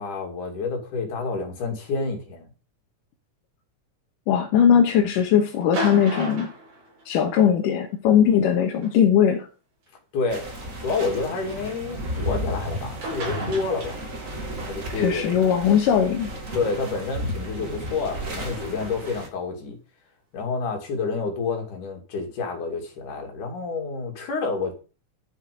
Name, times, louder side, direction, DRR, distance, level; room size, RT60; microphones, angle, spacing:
voice 1, 0.0-2.5 10.1-10.5 10.8-14.0 14.6-15.3 16.5-19.8 20.3-24.7, left 4 dB, 70° left, 4.1 m, -29 dB
voice 2, 4.3-6.5 7.1-9.5 15.0-16.3, left 8 dB, 85° left, 2.9 m, -19 dB
sound 1, 5.6-7.5 8.8-8.9 9.9-10.0 12.7-12.8 13.0-14.4 17.9-18.0, right 1 dB, 75° right, 7.0 m, -33 dB
sound 2, 10.3-19.3, equal, 30° right, 2.0 m, -33 dB
12.0 x 7.6 x 5.2 m
omnidirectional pair, 3.7 m